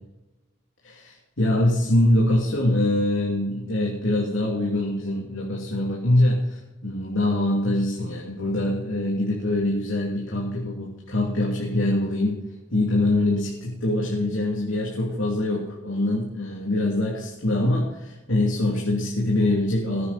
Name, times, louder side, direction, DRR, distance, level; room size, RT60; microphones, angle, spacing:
voice 1, 0.8-12.4 12.7-20.1, left 1 dB, 75° left, -4 dB, 3.1 m, -24 dB
19.5 x 9.9 x 4.4 m, 1.0 s
head